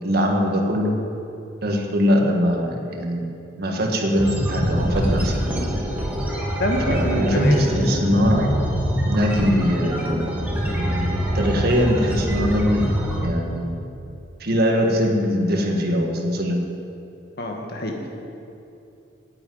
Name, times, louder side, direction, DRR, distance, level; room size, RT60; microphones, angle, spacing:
voice 1, 0.0-1.0 1.6-3.2 3.6-5.3 6.9-8.6 9.1-10.2 11.3-12.9 13.2-13.7 14.4-16.6, equal, 55° right, 2 dB, 1.7 m, -21 dB
sound 1, 4.2-13.2, equal, 10° right, 2.0 m, -24 dB
voice 2, 6.6-7.6 17.4-18.1, left 1 dB, 60° left, 1 dB, 1.8 m, -26 dB
9.6 x 8.7 x 9.4 m, 2.7 s
head